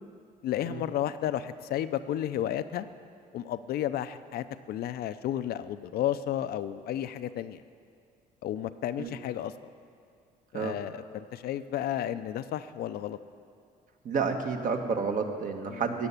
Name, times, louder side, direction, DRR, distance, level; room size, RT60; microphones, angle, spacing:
voice 1, 0.4-2.9 3.3-7.6 8.4-9.7 10.5-13.2 15.7-15.8, left 11 dB, 65° left, 11 dB, 0.6 m, -32 dB
voice 2, 14.0-16.1, right 5 dB, 50° right, 4 dB, 1.5 m, -30 dB
15.5 x 7.0 x 9.8 m, 2.3 s
cardioid pair, 110°, 17 cm